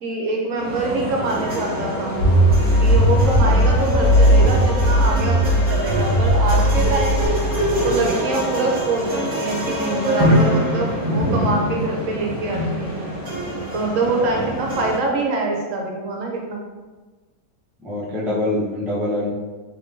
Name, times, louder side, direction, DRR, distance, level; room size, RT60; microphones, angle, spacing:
voice 1, 0.0-2.2 2.8-7.3 7.8-13.1 13.7-16.6, right 3 dB, 65° right, 0 dB, 1.0 m, -24 dB
sound 1, 0.6-15.0, equal, 25° right, 1.3 m, -24 dB
sound 2, 2.2-8.1, equal, 50° left, 2.0 m, -17 dB
voice 2, 3.3-3.7 4.0-4.1 14.3-14.6 17.8-19.3, left 1 dB, ahead, -7 dB, 0.5 m, -26 dB
5.2 x 2.9 x 2.6 m, 1.3 s
omnidirectional pair, 1.5 m